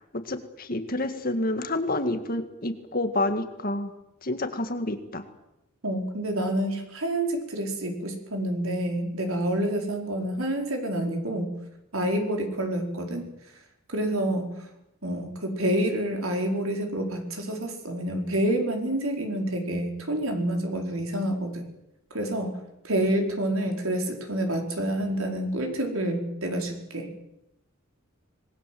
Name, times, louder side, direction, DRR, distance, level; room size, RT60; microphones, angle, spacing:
voice 1, 0.0-3.9 4.2-5.2, left 2 dB, 40° left, 8 dB, 1.9 m, -29 dB
voice 2, 5.8-11.5 11.9-13.3 13.9-14.5 15.0-21.7 22.1-22.5 22.8-27.1, right 1 dB, 70° right, 3 dB, 4.7 m, -28 dB
26.0 x 20.0 x 7.8 m, 0.88 s
head